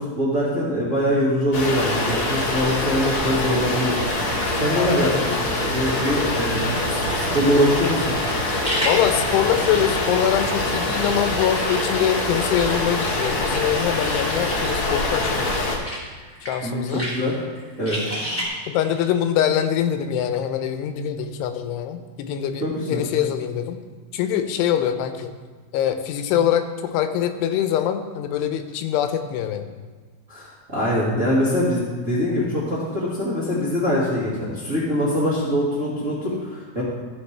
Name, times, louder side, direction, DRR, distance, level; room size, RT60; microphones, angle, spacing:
voice 1, 0.0-4.0 4.5-6.7 7.1-8.1 16.6-17.3 17.8-18.0 22.6-23.0 30.3-36.8, equal, 35° right, -8 dB, 1.2 m, -23 dB
sound 1, 1.5-15.8, left 2 dB, 50° left, 1.7 m, -24 dB
sound 2, 3.1-11.5, right 8 dB, 80° right, 2.3 m, -36 dB
sound 3, 4.0-18.5, equal, 5° left, 1.5 m, -35 dB
voice 2, 4.8-5.4 8.9-15.7 16.5-17.0 18.7-23.8 24.1-25.3 25.7-29.7, left 10 dB, 85° left, 8 dB, 2.8 m, -24 dB
14.5 x 6.9 x 3.3 m, 1.5 s
omnidirectional pair, 4.7 m